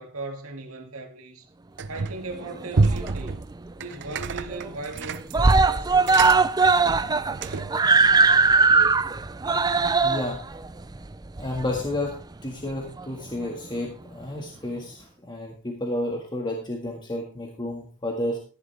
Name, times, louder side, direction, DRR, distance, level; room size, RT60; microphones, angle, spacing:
voice 1, 0.0-1.5 1.9-3.5 3.8-6.6, right 2 dB, 70° right, 2.5 m, -38 dB
sound 1, 1.8-2.3 2.7-7.8, right 3 dB, 55° right, 0.7 m, -29 dB
Screaming, 2.4-3.4 3.7-3.8 4.1-4.2 4.5-5.0 5.3-12.1 13.0-13.1, right 4 dB, 20° right, 0.5 m, -20 dB
voice 2, 10.0-10.4 11.4-12.2 12.4-18.4, left 1 dB, 20° left, 1.8 m, -31 dB
14.5 x 11.0 x 3.4 m
head